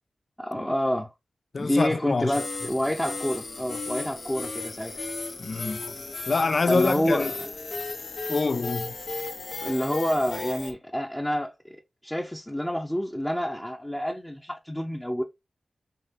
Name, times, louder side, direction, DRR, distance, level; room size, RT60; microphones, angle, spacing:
voice 1, 0.4-1.1 1.6-5.0 6.7-7.5 9.6-15.2, equal, 10° left, 0.7 m, -28 dB
voice 2, 1.5-2.3 5.4-5.9 6.3-7.3 8.3-8.9, left 4 dB, 50° left, 0.3 m, -25 dB
sound 1, 2.3-10.7, left 3 dB, 75° left, 1.5 m, -35 dB
5.6 x 3.2 x 2.5 m
wide cardioid pair, 90°, 0 cm